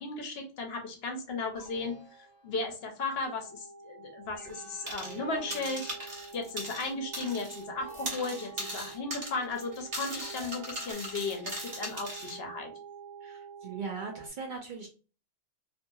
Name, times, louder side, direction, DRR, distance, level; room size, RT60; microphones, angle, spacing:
voice 1, 0.0-5.9 6.3-12.7, left 3 dB, 65° left, 3 dB, 0.8 m, -35 dB
sound 1, 1.5-3.0 4.4-6.7 7.8-9.2 10.1-10.9, right 2 dB, 40° left, 0.9 m, -51 dB
sound 2, 3.3-14.3, right 5 dB, 85° right, 1.1 m, -48 dB
sound 3, 4.9-5.2 5.5-7.6 7.9-12.4, right 1 dB, 40° right, 0.9 m, -39 dB
voice 2, 13.2-14.9, right 5 dB, 60° right, 1 dB, 0.5 m, -39 dB
2.7 x 2.6 x 2.3 m, 0.36 s
omnidirectional pair, 1.2 m